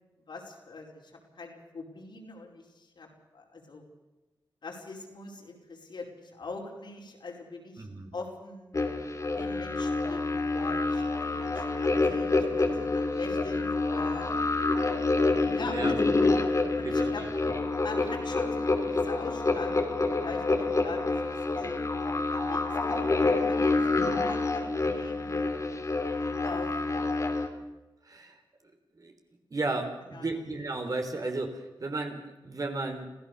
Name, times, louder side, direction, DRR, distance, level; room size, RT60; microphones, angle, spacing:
voice 1, 0.3-3.1 3.3-3.8 4.6-7.9 8.1-8.7 9.4-14.4 15.5-16.2 16.8-17.2 17.8-25.4 26.4-27.0 30.1-30.3, left 3 dB, 65° left, 0 dB, 5.1 m, -42 dB
voice 2, 7.8-8.1 15.7-16.0 16.8-17.5 28.1-28.3 29.0-29.1 29.5-33.1, right 2 dB, 45° right, 5 dB, 3.6 m, -34 dB
sound 1, 8.7-27.5, left 3 dB, 40° left, 2.8 m, -27 dB
26.5 x 16.0 x 6.8 m, 1.1 s
wide cardioid pair, 80°, 8 cm